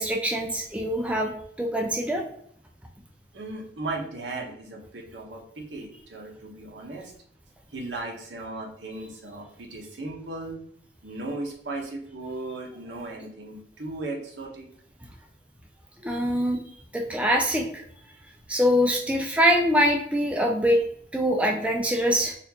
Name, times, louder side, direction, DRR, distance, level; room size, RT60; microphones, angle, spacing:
voice 1, 0.0-1.3 1.6-2.2 16.0-16.6 16.9-17.8 18.5-20.8 21.1-22.3, equal, 5° right, 1 dB, 0.4 m, -23 dB
voice 2, 3.3-7.1 7.7-10.6 11.0-14.7, right 2 dB, 80° right, -1 dB, 1.0 m, -36 dB
4.2 x 2.5 x 2.8 m, 0.67 s
head